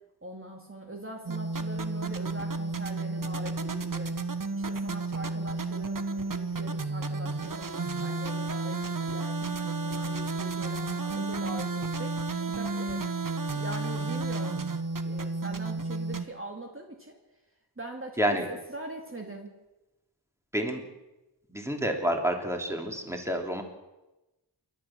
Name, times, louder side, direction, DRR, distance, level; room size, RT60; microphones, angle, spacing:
voice 1, 0.2-4.2 4.5-12.1 12.6-13.0 13.5-14.7 15.0-17.2 17.8-18.2 18.5-19.5, right 1 dB, 30° right, 2 dB, 2.4 m, -42 dB
sound 1, 1.3-16.3, right 3 dB, 50° right, 1.3 m, -32 dB
voice 2, 18.2-18.5 20.5-20.8 21.5-23.6, right 1 dB, 5° right, 3 dB, 3.3 m, -29 dB
28.0 x 12.5 x 7.6 m, 1.0 s
wide cardioid pair, 75°, 42 cm